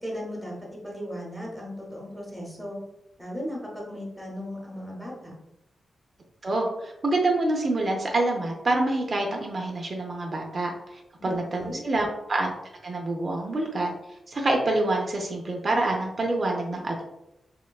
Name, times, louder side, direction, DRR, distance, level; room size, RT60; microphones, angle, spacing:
voice 1, 0.0-2.8 3.2-5.3 11.2-11.8, equal, ahead, -3 dB, 0.9 m, -36 dB
voice 2, 6.4-12.5 12.8-13.9 14.3-17.0, right 2 dB, 40° right, 1 dB, 0.5 m, -26 dB
3.5 x 2.2 x 2.3 m, 0.87 s
wide cardioid pair, 115°, 0 cm